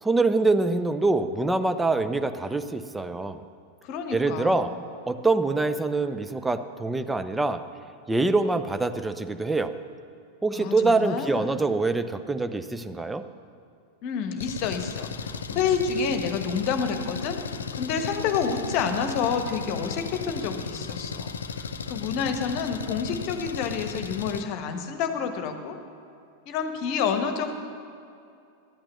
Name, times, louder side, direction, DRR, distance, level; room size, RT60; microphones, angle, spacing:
voice 1, 0.0-3.4 4.1-4.7 5.1-7.6 8.1-9.7 10.4-13.2, right 3 dB, 10° right, 10 dB, 0.6 m, -25 dB
voice 2, 3.8-4.8 10.5-11.6 14.0-17.4 17.7-25.8 26.5-27.5, left 6 dB, 45° left, 7 dB, 1.2 m, -29 dB
Engine, 14.4-24.4, left 5 dB, 70° left, 0.5 m, -35 dB
12.5 x 8.8 x 6.9 m, 2.5 s
figure-of-eight pair, 90°, 0 cm